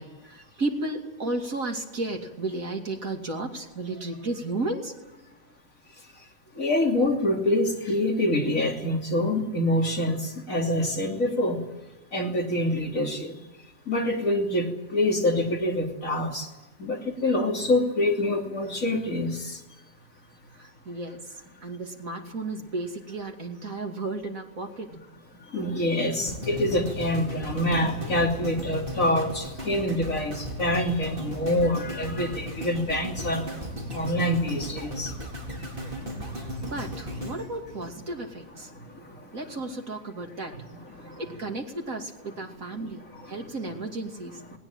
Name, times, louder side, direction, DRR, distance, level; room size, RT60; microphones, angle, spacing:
voice 1, 0.0-4.9 20.6-21.2 21.6-24.9 36.6-38.7 39.3-40.6 41.1-44.6, right 2 dB, 55° right, 3 dB, 3.1 m, -33 dB
voice 2, 6.6-11.6 12.1-13.5 13.9-16.5 16.8-19.6 24.9-25.0 25.5-33.5 33.9-35.2 35.6-36.7 37.3-37.5 38.6-39.3 40.5-41.3 42.3-42.4 42.7-43.5 44.5-44.6, left 1 dB, 55° left, 1 dB, 3.5 m, -26 dB
sound 1, 26.3-38.5 39.0-39.1, equal, 30° right, 4.2 m, -36 dB
20.0 x 19.5 x 9.0 m, 1.1 s
omnidirectional pair, 1.7 m